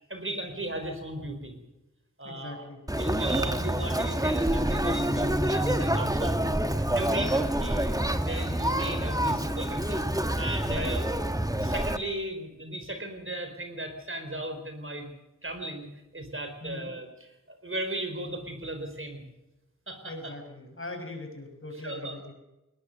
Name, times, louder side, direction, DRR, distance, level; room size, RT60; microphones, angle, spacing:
voice 1, 0.1-1.5 2.2-2.6 3.0-6.4 6.7-10.0 10.4-11.0 11.6-15.1 15.4-19.2 19.9-20.3 21.8-22.3, right 1 dB, 40° right, 6 dB, 4.5 m, -36 dB
voice 2, 2.2-2.8 7.0-7.6 10.7-10.9 16.6-16.9 20.0-22.3, left 2 dB, 45° left, 4 dB, 6.0 m, -40 dB
Conversation, 2.9-12.0, right 1 dB, 10° right, 1.3 m, -27 dB
21.0 x 19.5 x 6.7 m, 1.0 s
wide cardioid pair, 65°, 31 cm